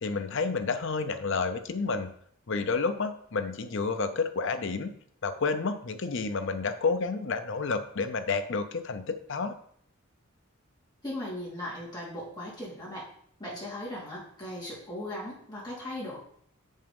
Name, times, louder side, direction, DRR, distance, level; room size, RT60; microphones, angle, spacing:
voice 1, 0.0-2.1 2.5-4.9 5.2-9.5, left 4 dB, 60° left, 9 dB, 0.7 m, -30 dB
voice 2, 11.0-13.1 13.4-16.2, left 1 dB, 20° left, -7 dB, 3.6 m, -38 dB
7.1 x 5.5 x 5.4 m, 0.64 s
head